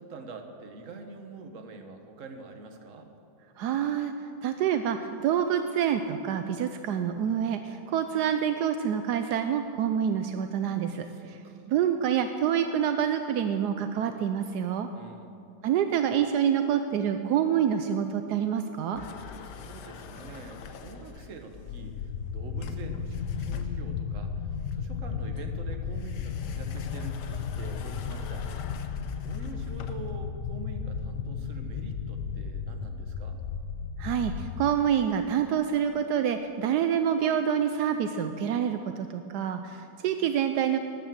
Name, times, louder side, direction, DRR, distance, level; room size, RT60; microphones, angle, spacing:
voice 1, 0.0-3.1 11.0-11.7 14.9-15.4 19.4-28.5 29.2-33.4, right 3 dB, 50° right, 5 dB, 1.5 m, -45 dB
voice 2, 3.6-4.1 4.4-11.4 11.7-14.9 15.6-19.0 34.0-40.8, right 9 dB, 80° right, 8 dB, 1.2 m, -27 dB
sound 1, 18.9-21.5 22.6-24.1 24.7-30.2, left 6 dB, 85° left, 1.4 m, -44 dB
sound 2, 21.5-34.7, left 6 dB, 65° left, 1.0 m, -34 dB
13.0 x 10.0 x 7.5 m, 2.6 s
omnidirectional pair, 1.8 m